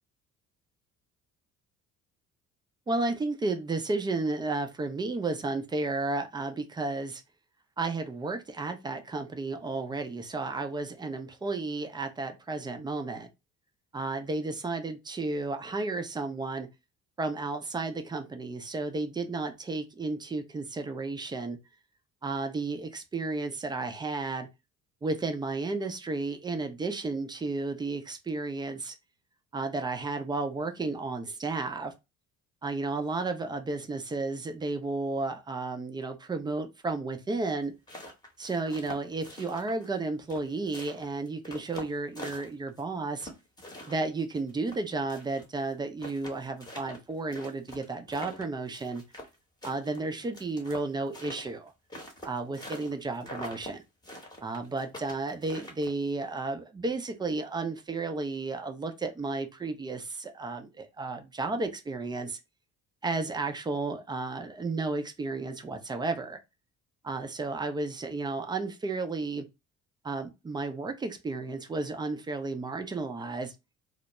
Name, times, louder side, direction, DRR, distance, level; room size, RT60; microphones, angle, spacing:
voice 1, 2.9-7.2 7.8-13.3 13.9-16.7 17.2-21.6 22.2-24.5 25.0-28.9 29.5-31.9 32.6-37.7 38.4-43.3 43.9-49.0 49.6-51.7 52.2-53.8 54.4-62.4 63.0-66.4 67.0-69.4 70.0-73.5, right 3 dB, 10° right, 0.4 m, -33 dB
sound 1, 37.6-40.0 40.3-42.8 43.2-45.4 45.7-45.8 46.0-49.4 49.6-52.9 53.2-53.7 54.0-56.1, left 1 dB, 10° left, 0.9 m, -44 dB
2.1 x 2.1 x 2.8 m
figure-of-eight pair, 50°, 38 cm